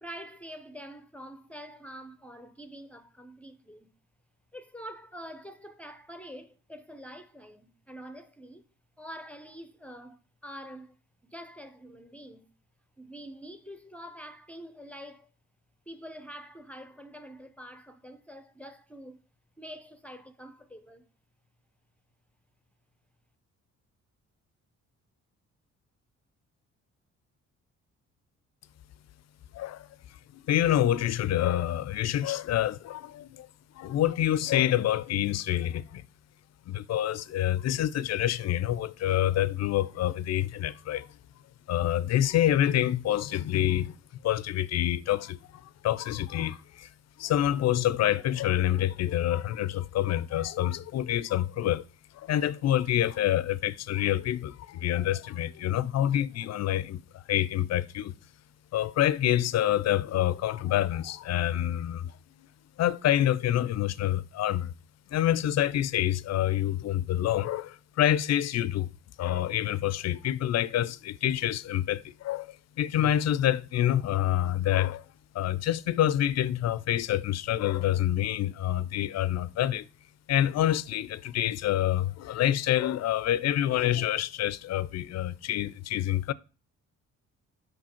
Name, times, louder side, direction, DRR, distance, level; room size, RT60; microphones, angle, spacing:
voice 1, 0.0-3.9 4.5-8.6 9.0-12.5 13.0-15.3 15.9-19.3 19.6-21.1, equal, 5° left, 0.6 m, -46 dB
voice 2, 29.5-29.9 30.3-33.5 33.7-36.1 36.7-41.1 41.7-44.0 44.2-46.9 47.2-51.8 52.1-58.1 58.7-62.1 62.8-64.7 65.1-68.9 69.2-75.0 75.3-79.9 80.3-86.3, left 12 dB, 60° left, 0.5 m, -27 dB
6.1 x 5.3 x 4.3 m
cardioid pair, 90°, 30 cm